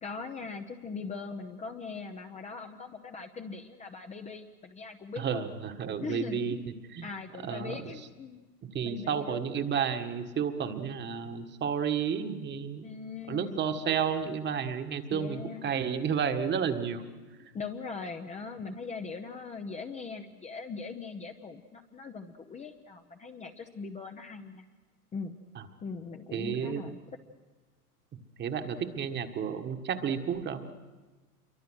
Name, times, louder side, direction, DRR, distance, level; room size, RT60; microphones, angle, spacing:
voice 1, 0.0-5.5 6.0-6.6 7.0-8.4 8.8-9.4 12.8-13.6 15.1-15.7 17.5-24.7 25.1-25.4 25.8-27.0, left 4 dB, 15° left, 4 dB, 0.9 m, -40 dB
voice 2, 5.2-6.6 6.9-7.0 7.4-7.8 8.7-12.9 13.3-17.0 26.3-27.0 28.1-30.6, right 7 dB, 20° right, 7 dB, 1.6 m, -31 dB
27.5 x 23.5 x 6.3 m, 1.3 s
hypercardioid pair, 105°, 47 cm